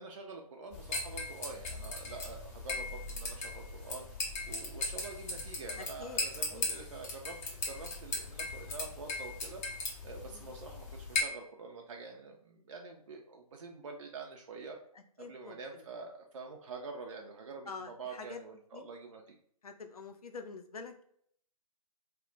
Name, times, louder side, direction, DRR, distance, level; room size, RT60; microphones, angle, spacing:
voice 1, 0.0-4.1 4.4-7.4 7.7-9.6 10.0-14.8 15.2-19.4, right 4 dB, 55° right, 1 dB, 0.4 m, -46 dB
sound 1, 0.7-11.2, left 3 dB, 25° left, 0.5 m, -38 dB
voice 2, 5.8-6.2 6.5-6.7 10.3-10.5 14.9-15.8 17.7-18.4 18.7-18.8 19.6-21.0, left 4 dB, 70° left, 6 dB, 0.5 m, -46 dB
2.1 x 2.0 x 3.8 m, 0.65 s
figure-of-eight pair, 135°, 20 cm